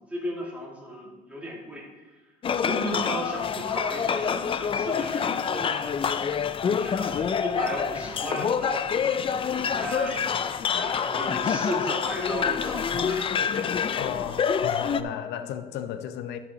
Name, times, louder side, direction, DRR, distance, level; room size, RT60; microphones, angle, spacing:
voice 1, 0.1-2.1 2.6-6.0 6.6-10.3 10.7-13.3, equal, 10° right, 2.7 m, -35 dB
sound 1, 2.4-15.0, left 7 dB, 30° left, 0.4 m, -27 dB
sound 2, 5.6-14.8, right 11 dB, 85° right, 0.9 m, -45 dB
voice 2, 13.9-16.4, left 9 dB, 80° left, 0.8 m, -34 dB
12.5 x 5.9 x 3.9 m
cardioid pair, 110°, 17 cm